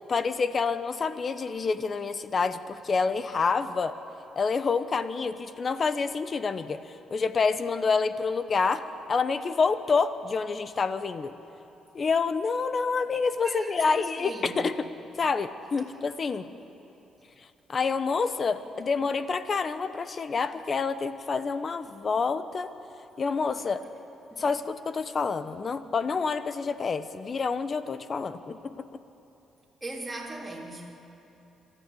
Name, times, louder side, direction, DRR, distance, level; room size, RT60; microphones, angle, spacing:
voice 1, 0.1-3.9 4.4-6.8 7.1-11.4 11.9-14.9 15.2-16.5 17.7-22.7 23.2-23.8 24.4-28.9, left 5 dB, 40° left, 12 dB, 1.0 m, -28 dB
voice 2, 13.4-14.7 24.3-24.5 29.8-30.9, right 2 dB, 15° right, -3 dB, 3.3 m, -38 dB
26.5 x 13.0 x 8.5 m, 2.9 s
cardioid pair, 90°, 0 cm